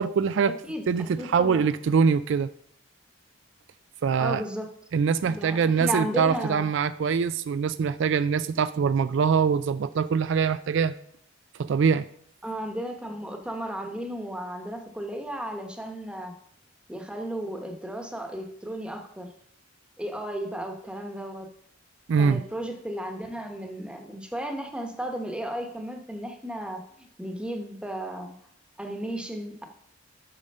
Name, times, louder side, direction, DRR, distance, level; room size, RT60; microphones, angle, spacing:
voice 1, 0.0-0.5 0.9-2.5 4.0-4.4 4.9-10.9 11.6-12.0 22.1-22.4, right 6 dB, 60° right, 13 dB, 0.3 m, -23 dB
voice 2, 0.6-1.6 4.2-4.7 5.3-6.7 12.4-16.3 16.9-19.3 20.0-21.5 22.2-28.3 28.8-29.7, right 1 dB, 5° right, 4 dB, 1.0 m, -34 dB
8.5 x 6.5 x 5.4 m, 0.68 s
head